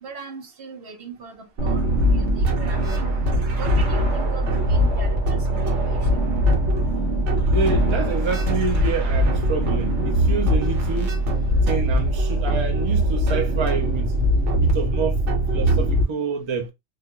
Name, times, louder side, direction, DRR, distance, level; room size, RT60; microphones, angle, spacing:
voice 1, 0.0-3.1 3.5-6.3, right 5 dB, 60° right, 0.8 m, -39 dB
sound 1, 1.6-16.0, equal, 80° right, 1.1 m, -21 dB
voice 2, 7.4-11.2 11.7-14.1 14.6-15.2 15.5-16.7, right 4 dB, 40° right, 0.4 m, -28 dB
2.4 x 2.2 x 2.8 m
omnidirectional pair, 1.2 m